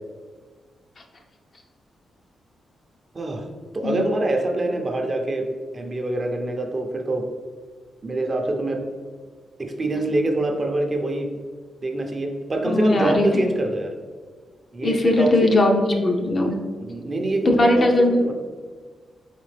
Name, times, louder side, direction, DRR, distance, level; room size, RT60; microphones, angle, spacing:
voice 1, 3.7-5.5 5.7-7.3 8.0-8.8 9.6-11.3 11.8-13.9 14.7-15.5 16.8-18.3, right 2 dB, 35° right, 3 dB, 0.6 m, -25 dB
voice 2, 12.7-13.4 14.8-16.6 17.5-18.2, left 1 dB, 45° left, 2 dB, 0.6 m, -19 dB
4.0 x 3.7 x 3.3 m, 1.5 s
cardioid pair, 85°, 0 cm